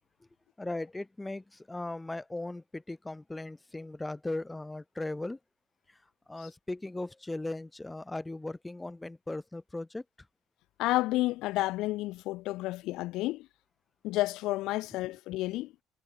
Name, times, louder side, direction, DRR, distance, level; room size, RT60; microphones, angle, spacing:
voice 1, 0.6-5.4 5.9-6.0 6.3-10.0, left 2 dB, 15° left, 5.7 m, -38 dB
voice 2, 10.8-13.5 14.0-15.7, left 18 dB, 70° left, 1.0 m, -30 dB
hypercardioid pair, 65°, 0 cm